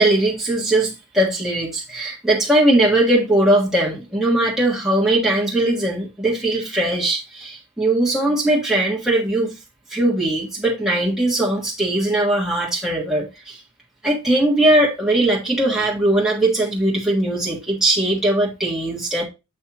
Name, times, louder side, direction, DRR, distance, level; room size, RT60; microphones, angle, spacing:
voice 1, 0.0-9.5 9.9-13.6 14.0-19.2, right 1 dB, ahead, 1.5 m, -19 dB
7.5 x 5.4 x 3.0 m
head